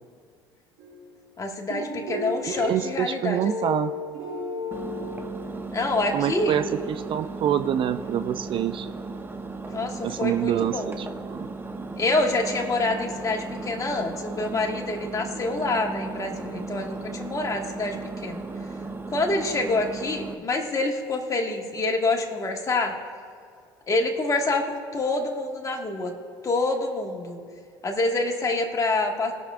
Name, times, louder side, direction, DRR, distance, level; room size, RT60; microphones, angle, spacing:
sound 1, 0.8-1.2 1.7-6.0, left 2 dB, 75° right, 2.5 m, -34 dB
voice 1, 1.4-3.7 5.7-6.6 9.7-10.9 12.0-18.4 19.1-23.0 23.9-26.1 26.4-27.4 27.8-29.3, left 2 dB, 30° left, 2 dB, 1.8 m, -26 dB
voice 2, 2.5-3.9 6.1-8.9 10.0-11.5, right 10 dB, 45° right, 10 dB, 0.4 m, -26 dB
Engine, 4.7-20.3, right 3 dB, 15° right, 0.8 m, -36 dB
20.0 x 6.9 x 2.5 m, 2.2 s
hypercardioid pair, 70°, 12 cm